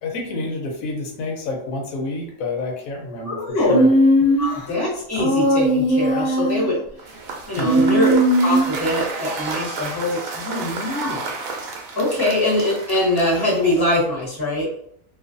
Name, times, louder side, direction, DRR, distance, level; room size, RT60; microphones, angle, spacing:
voice 1, 0.0-3.9 7.6-7.9, left 2 dB, 85° left, 1 dB, 1.0 m, -29 dB
voice 2, 3.2-3.8 4.4-6.8 7.5-11.2 12.0-14.7, left 1 dB, 20° left, -5 dB, 0.9 m, -22 dB
Human voice, 3.7-4.6 5.2-6.7 7.6-8.9, right 1 dB, 65° left, 0.7 m, -18 dB
Cheering / Applause / Crowd, 7.0-14.1, right 3 dB, 85° right, 1.0 m, -32 dB
2.5 x 2.4 x 2.5 m, 0.69 s
omnidirectional pair, 1.4 m